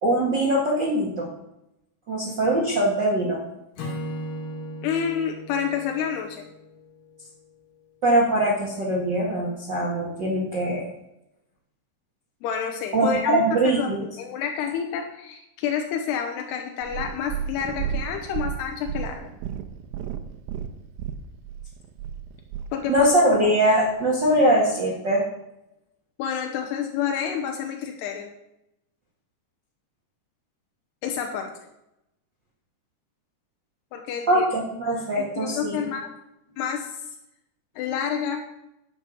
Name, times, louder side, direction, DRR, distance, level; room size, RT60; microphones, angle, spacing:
voice 1, 0.0-1.3 2.1-3.4 8.0-10.9 12.9-14.0 22.9-25.3 34.3-35.8, right 1 dB, 45° right, -2 dB, 1.6 m, -22 dB
Acoustic guitar / Strum, 3.8-7.1, equal, 60° left, 3.6 m, -36 dB
voice 2, 4.8-6.4 12.4-13.4 13.7-19.3 22.7-23.1 26.2-28.3 31.0-31.5 33.9-34.4 35.2-36.1 36.6-37.0 37.8-38.5, left 7 dB, 85° left, 3 dB, 3.0 m, -29 dB
Purr, 16.8-23.1 23.9-24.0, right 9 dB, 80° right, 2.4 m, -33 dB
10.5 x 7.3 x 6.9 m, 0.87 s
omnidirectional pair, 4.6 m